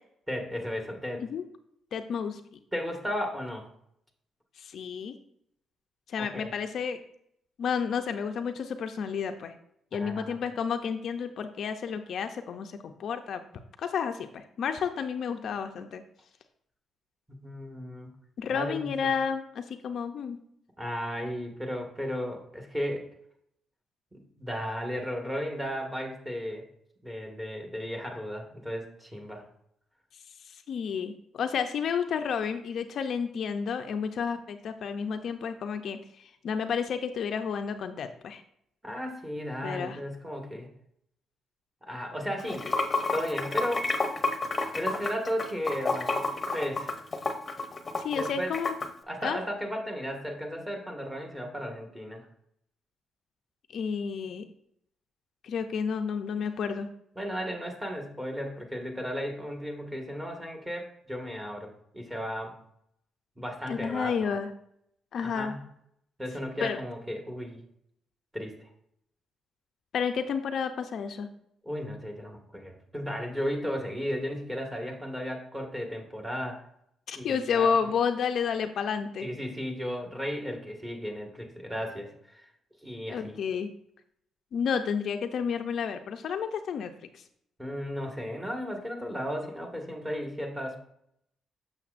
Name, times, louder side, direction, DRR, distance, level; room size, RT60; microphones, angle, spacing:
voice 1, 0.3-1.2 2.7-3.7 6.2-6.5 9.9-10.3 17.4-18.1 18.5-19.1 20.8-23.1 24.1-26.6 27.0-29.4 38.8-40.7 41.8-42.7 43.1-43.9 44.7-46.2 46.5-47.0 48.1-48.5 49.1-52.2 57.2-62.6 63.4-64.3 65.2-65.6 66.2-67.6 68.3-68.5 71.6-76.6 77.1-77.7 79.2-82.4 82.8-83.4 87.6-90.8, equal, 15° right, 2 dB, 1.6 m, -35 dB
voice 2, 1.9-2.6 4.6-5.2 6.1-7.0 7.6-9.5 9.9-13.4 13.8-16.0 18.4-20.4 30.4-38.4 39.6-40.0 48.0-48.7 49.2-49.4 53.7-54.5 55.4-56.9 63.7-64.5 65.1-65.5 66.6-66.8 69.9-71.3 77.1-79.3 83.1-83.7 84.5-87.2, left 6 dB, 65° left, 7 dB, 0.5 m, -31 dB
Water / Sink (filling or washing), 42.4-48.9, left 3 dB, 30° left, 0.8 m, -30 dB
7.2 x 6.4 x 2.5 m, 0.72 s
cardioid pair, 90°, 0 cm